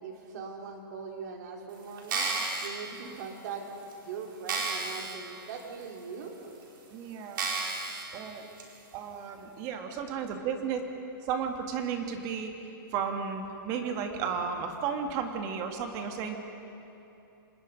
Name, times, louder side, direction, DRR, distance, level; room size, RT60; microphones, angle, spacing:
voice 1, 0.0-2.3 2.6-6.3, right 5 dB, 50° right, 2 dB, 3.1 m, -41 dB
sound 1, 2.0-2.7 3.4-3.5 3.9-4.0 4.5-5.2 5.6-5.7 6.4-6.5 7.4-8.0 8.6-8.7, right 4 dB, 65° right, 4.7 m, -31 dB
voice 2, 6.9-7.4 8.1-8.5 8.9-10.8 11.2-12.6 12.9-16.4, right 6 dB, 30° right, 5 dB, 1.9 m, -33 dB
26.5 x 20.0 x 5.2 m, 2.8 s
hypercardioid pair, 160°, 12 cm